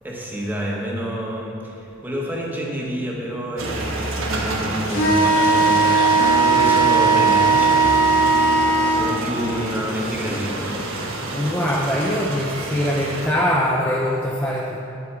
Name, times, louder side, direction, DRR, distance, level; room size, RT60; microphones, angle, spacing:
voice 1, 0.0-8.5 8.9-10.8, equal, 10° right, -3 dB, 1.4 m, -29 dB
sound 1, 3.6-13.3, right 2 dB, 85° right, 1.2 m, -28 dB
sound 2, 4.9-9.0, right 4 dB, 85° left, 2.1 m, -17 dB
sound 3, 6.2-12.4, right 4 dB, 65° right, 1.1 m, -33 dB
voice 2, 11.3-14.8, equal, 10° left, -3 dB, 0.6 m, -22 dB
9.8 x 8.5 x 4.8 m, 2.6 s
head